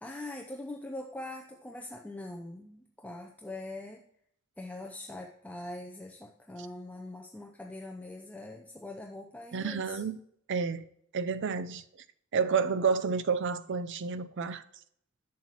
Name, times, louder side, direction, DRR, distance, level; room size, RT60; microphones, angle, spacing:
voice 1, 0.0-4.0 4.6-10.0, left 2 dB, 5° left, 0.6 m, -42 dB
voice 2, 9.5-10.2 10.5-10.8 11.1-11.8 12.3-14.6, right 5 dB, 60° right, 0.5 m, -30 dB
11.0 x 7.4 x 2.9 m
head